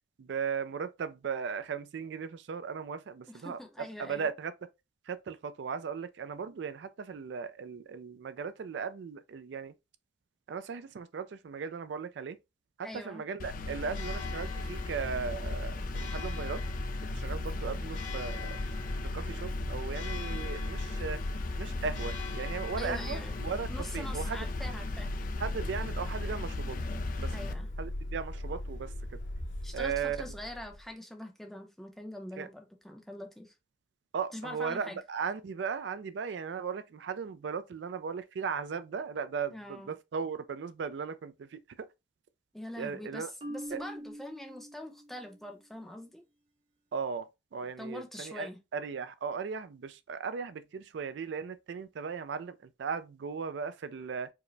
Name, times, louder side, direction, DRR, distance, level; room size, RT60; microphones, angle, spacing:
voice 1, 0.2-4.5 5.1-9.7 10.5-12.4 12.8-16.6 17.1-18.6 19.1-21.2 21.6-24.5 25.4-26.8 27.2-27.3 27.8-28.9 29.7-30.4 32.4-32.5 34.1-41.9 42.8-43.3 43.7-43.8 46.9-54.3, right 6 dB, 70° right, 0.4 m, -37 dB
voice 2, 3.3-4.3 12.8-13.2 22.8-23.4 23.7-25.1 27.3-27.7 29.6-33.5 34.3-35.0 39.5-39.9 42.5-46.2 47.8-48.6, left 1 dB, ahead, 0.6 m, -43 dB
sound 1, 13.4-27.5, left 3 dB, 45° left, 0.4 m, -39 dB
Church bell, 13.6-30.9, left 1 dB, 75° left, 1.9 m, -38 dB
Marimba xylophone, 43.4-45.4, equal, 35° right, 0.7 m, -44 dB
4.7 x 2.1 x 3.2 m
head